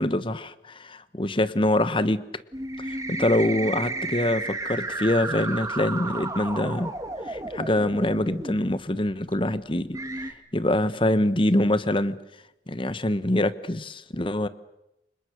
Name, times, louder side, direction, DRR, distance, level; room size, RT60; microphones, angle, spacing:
voice 1, 0.0-2.2 3.1-6.9 7.3-10.0 10.5-12.2 12.7-14.5, left 1 dB, 30° left, 14 dB, 1.1 m, -24 dB
sound 1, 2.5-8.6 9.3-9.4 9.9-10.3, right 2 dB, 20° right, 2.4 m, -32 dB
29.5 x 25.5 x 6.7 m, 0.89 s
head